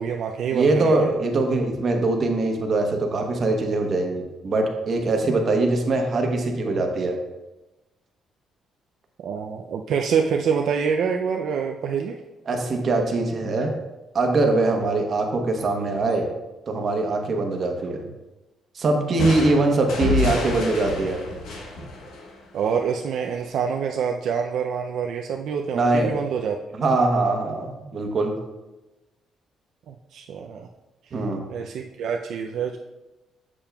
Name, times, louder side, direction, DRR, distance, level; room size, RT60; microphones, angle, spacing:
voice 1, 0.0-1.1 9.2-12.2 22.5-26.6 29.9-30.7 31.5-32.8, right 6 dB, 65° right, 2 dB, 0.4 m, -26 dB
voice 2, 0.5-7.2 12.5-13.7 14.1-16.3 16.7-18.1 18.7-21.2 25.7-26.2 26.7-28.4 31.1-31.5, right 2 dB, 40° right, 3 dB, 0.9 m, -22 dB
sound 1, 19.2-22.9, left 3 dB, 85° left, 1.1 m, -28 dB
7.1 x 6.8 x 2.3 m, 1.1 s
cardioid pair, 135°, 0 cm